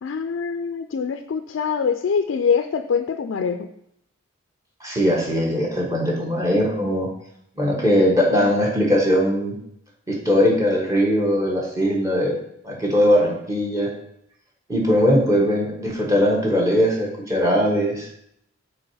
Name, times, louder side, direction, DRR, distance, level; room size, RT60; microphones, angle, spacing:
voice 1, 0.0-3.7, left 6 dB, 65° left, 8 dB, 0.3 m, -24 dB
voice 2, 4.8-7.1 7.6-9.5 10.1-12.4 12.6-13.9 14.7-18.1, equal, 15° right, -2 dB, 1.2 m, -20 dB
6.2 x 4.1 x 4.8 m, 0.76 s
head